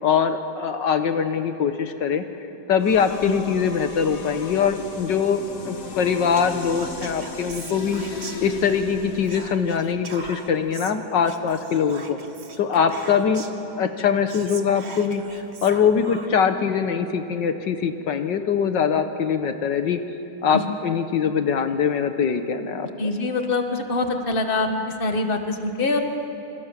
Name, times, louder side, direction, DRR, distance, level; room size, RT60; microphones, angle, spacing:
voice 1, 0.0-2.2 2.7-8.0 8.4-12.2 12.6-13.4 13.7-20.0 20.4-22.9, left 7 dB, 75° left, 8 dB, 1.8 m, -22 dB
sound 1, 2.8-9.7, left 3 dB, 50° left, 2.2 m, -36 dB
Whispering, 6.3-8.9 9.2-13.7 14.0-14.1 14.3-16.5, right 4 dB, 35° right, 1.7 m, -41 dB
voice 2, 23.0-24.7 25.0-26.0, left 3 dB, 30° left, 5 dB, 1.9 m, -24 dB
29.0 x 26.5 x 7.4 m, 3.0 s
omnidirectional pair, 2.0 m